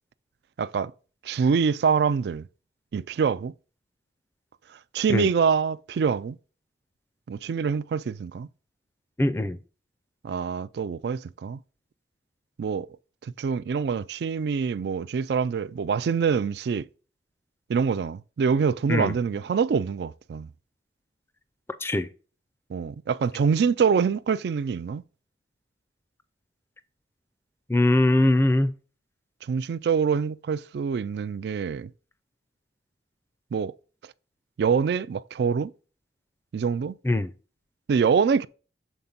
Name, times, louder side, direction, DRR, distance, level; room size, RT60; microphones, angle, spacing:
voice 1, 0.6-0.9 1.2-2.5 2.9-3.5 4.9-6.4 7.3-8.5 10.2-11.6 12.6-12.9 13.2-16.9 17.7-20.5 22.7-25.0 29.5-31.9 33.5-33.7 34.6-35.7 36.5-36.9 37.9-38.5, right 6 dB, 65° right, 0.3 m, -25 dB
voice 2, 9.2-9.6 18.9-19.1 21.8-22.1 27.7-28.7 37.0-37.3, left 1 dB, 15° left, 0.4 m, -21 dB
7.1 x 4.3 x 3.9 m
head